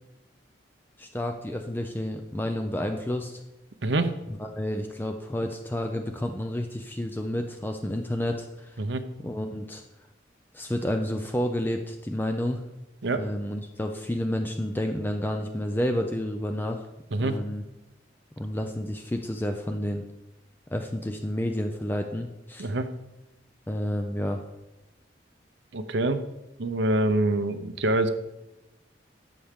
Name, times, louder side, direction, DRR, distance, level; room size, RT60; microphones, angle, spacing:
voice 1, 1.0-3.4 4.3-8.8 9.2-9.8 10.5-12.6 13.1-16.9 17.2-17.6 18.4-20.0 20.7-22.7 23.7-24.4, left 1 dB, 10° left, 5 dB, 0.4 m, -30 dB
voice 2, 25.7-26.2 26.6-28.1, right 2 dB, 70° right, 10 dB, 0.7 m, -25 dB
11.5 x 7.8 x 3.6 m, 0.96 s
head